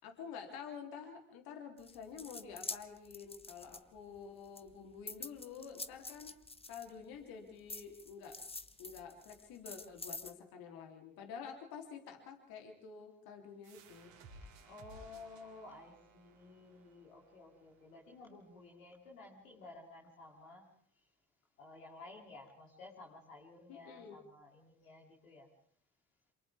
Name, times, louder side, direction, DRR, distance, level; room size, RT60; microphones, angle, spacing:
voice 1, 0.0-6.3 6.7-8.4 8.8-14.1 23.7-24.2, left 6 dB, 65° left, 3 dB, 3.7 m, -49 dB
sound 1, 1.8-4.2 4.6-7.2 7.7-10.3, left 3 dB, 15° left, 1.3 m, -47 dB
sound 2, 13.6-19.0, right 2 dB, 80° right, 4.3 m, -59 dB
voice 2, 14.6-20.7 21.6-25.5, left 3 dB, 80° left, -2 dB, 3.3 m, -54 dB
28.0 x 27.5 x 3.7 m, 0.63 s
figure-of-eight pair, 45°, 39 cm